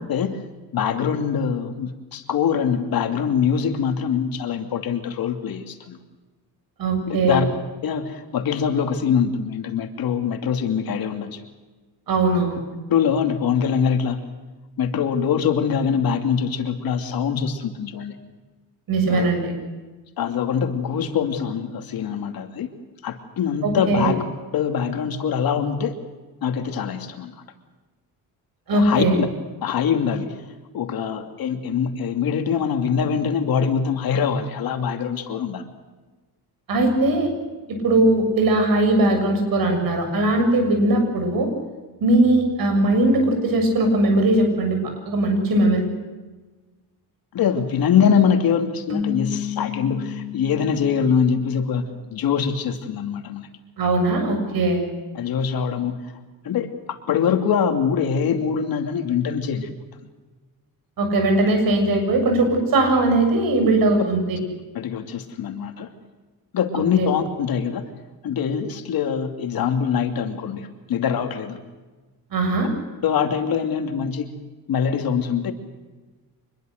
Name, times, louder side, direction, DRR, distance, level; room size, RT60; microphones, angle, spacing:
voice 1, 0.1-0.4 0.7-6.0 7.1-7.5 7.8-11.4 12.9-14.2 14.8-18.2 19.1-19.3 20.2-22.7 23.0-24.2 24.5-26.0 26.4-27.3 28.7-29.3 29.6-30.4 30.7-35.6 47.3-51.8 52.1-53.5 55.1-56.2 56.4-59.7 64.7-65.9 66.5-67.8 68.2-71.6 73.0-74.3 74.7-75.5, left 7 dB, 65° left, 5 dB, 2.8 m, -23 dB
voice 2, 6.8-7.4 12.1-12.6 18.9-19.5 23.6-24.1 28.7-29.2 36.7-37.3 37.7-41.5 42.0-45.9 53.8-54.9 61.0-64.4 67.0-67.1 72.3-72.7, right 2 dB, 65° right, 5 dB, 7.2 m, -19 dB
sound 1, 48.9-52.2, left 8 dB, 40° right, 3.4 m, -32 dB
25.5 x 21.5 x 6.6 m, 1.3 s
cardioid pair, 135°, 38 cm